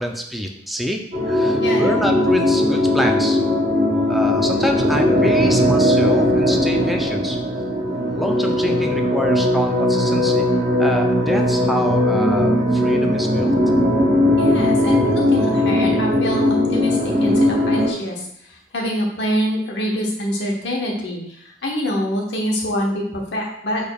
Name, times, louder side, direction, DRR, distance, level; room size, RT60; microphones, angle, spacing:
voice 1, 0.0-3.5 4.1-7.4 8.1-10.4 10.8-13.5, equal, ahead, 2 dB, 0.4 m, -26 dB
sound 1, 1.1-17.9, left 1 dB, 45° right, 0.8 m, -18 dB
voice 2, 1.6-2.0 14.4-23.9, equal, 65° left, -1 dB, 1.1 m, -25 dB
6.5 x 3.4 x 2.3 m, 0.72 s
head